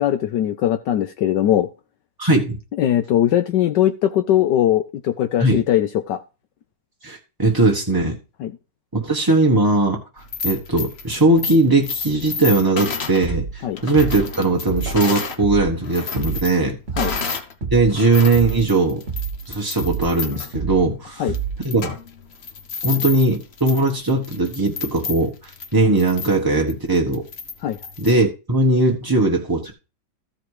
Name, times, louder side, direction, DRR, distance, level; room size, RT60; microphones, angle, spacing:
voice 1, 0.0-1.7 2.8-6.2 8.4-8.5 13.6-13.8 17.0-17.1 21.2-21.3 27.6-27.8, left 11 dB, 70° left, 9 dB, 1.2 m, -20 dB
voice 2, 2.2-2.6 5.4-5.6 7.0-8.2 9.0-16.8 17.7-19.0 19.5-21.3 21.6-22.0 22.8-27.2 28.0-29.7, right 2 dB, 20° right, 0 dB, 0.6 m, -19 dB
sound 1, 10.2-15.4 15.8-17.5 17.9-28.1, left 5 dB, 40° left, 1.0 m, -31 dB
sound 2, 13.2-13.6 13.9-14.3 14.7-15.1 15.4-15.8 16.1-16.5 16.9-17.2 17.6-18.0 18.3-18.7 19.1-19.4 19.8-20.2 20.5-20.9 21.3-21.7, right 7 dB, 40° right, 1.2 m, -28 dB
13.5 x 5.1 x 4.7 m, 0.31 s
omnidirectional pair, 2.1 m